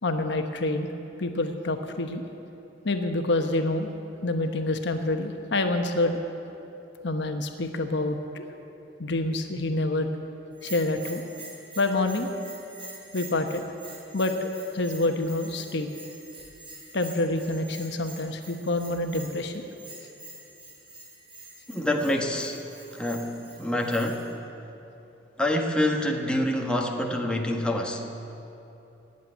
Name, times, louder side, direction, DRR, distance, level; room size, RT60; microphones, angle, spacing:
voice 1, 0.0-0.9 1.2-2.2 2.8-3.9 4.2-6.2 7.0-8.4 9.0-10.1 10.6-11.2 11.8-12.3 13.1-13.6 14.1-15.9 16.9-19.6, left 2 dB, 65° left, 5 dB, 1.1 m, -27 dB
Bell, 10.5-24.3, right 2 dB, 30° right, 3.5 m, -46 dB
voice 2, 21.7-22.6 22.9-24.3 25.4-28.0, left 1 dB, 5° left, 1 dB, 1.2 m, -26 dB
18.5 x 7.7 x 9.6 m, 3.0 s
head